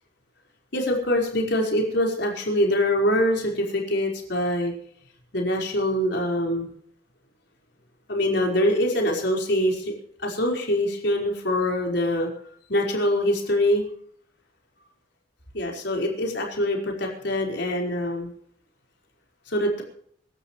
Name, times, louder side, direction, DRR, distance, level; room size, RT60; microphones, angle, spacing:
voice 1, 0.7-4.7 5.3-6.7 8.1-9.9 10.2-12.3 12.7-13.8 15.5-18.3 19.5-19.8, left 1 dB, 65° left, 0 dB, 5.0 m, -24 dB
26.0 x 13.0 x 3.3 m, 0.63 s
head